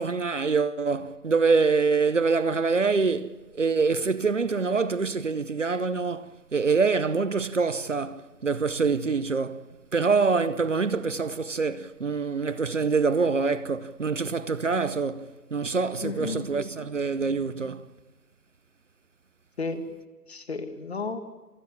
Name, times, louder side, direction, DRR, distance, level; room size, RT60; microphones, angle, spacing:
voice 1, 0.0-9.6 9.9-17.8, right 4 dB, 50° right, 0.9 m, -25 dB
voice 2, 16.0-16.6 19.6-19.8 20.3-21.2, left 3 dB, 40° left, 1.9 m, -32 dB
28.5 x 10.0 x 9.8 m
figure-of-eight pair, 150°, 48 cm